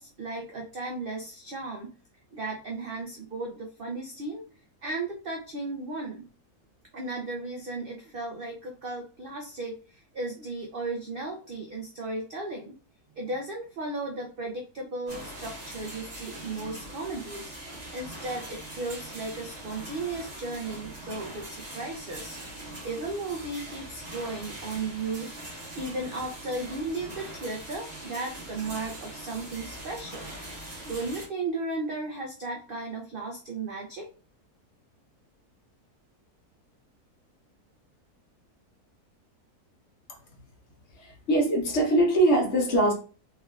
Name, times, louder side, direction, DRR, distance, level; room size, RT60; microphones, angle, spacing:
voice 1, 0.0-1.9 2.3-4.5 4.8-6.3 6.9-12.7 13.2-22.4 22.8-25.3 25.7-30.3 30.6-34.1, right 2 dB, 90° right, 1 dB, 0.4 m, -35 dB
sound 1, 15.1-31.3, right 1 dB, 30° right, 1.3 m, -42 dB
voice 2, 40.9-42.9, right 1 dB, 50° left, 1 dB, 1.1 m, -22 dB
3.3 x 3.3 x 2.3 m, 0.38 s
omnidirectional pair, 1.7 m